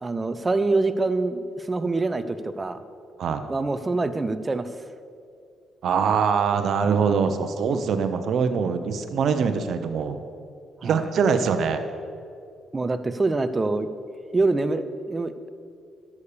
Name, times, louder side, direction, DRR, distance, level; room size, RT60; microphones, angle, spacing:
voice 1, 0.0-2.8 3.5-4.7 10.8-11.1 12.7-13.9 14.3-15.5, right 3 dB, 25° right, 11 dB, 0.7 m, -25 dB
voice 2, 5.8-10.2 10.8-11.8, right 6 dB, 65° right, 8 dB, 0.8 m, -23 dB
11.0 x 7.3 x 6.8 m, 2.3 s
cardioid pair, 90°, 0 cm